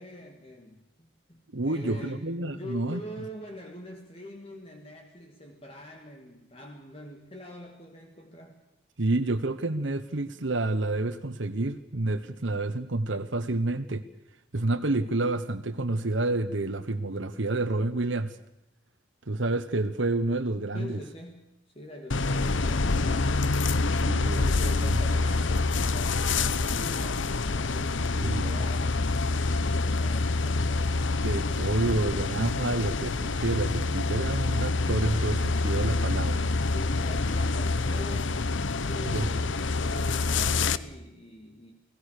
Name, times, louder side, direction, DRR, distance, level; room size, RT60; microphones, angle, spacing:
voice 1, 0.0-8.6 20.7-21.4 21.7-23.6 24.3-31.0 36.7-38.4 38.8-41.7, equal, 30° left, 3 dB, 2.2 m, -44 dB
voice 2, 1.5-3.0 9.0-14.0 14.5-18.4 19.3-21.0 23.9-25.0 28.2-28.6 31.2-36.4 39.0-39.3, right 2 dB, 75° right, 9 dB, 1.2 m, -29 dB
sound 1, 22.1-40.8, left 3 dB, 75° left, 0.9 m, -26 dB
29.5 x 18.5 x 6.6 m, 0.88 s
head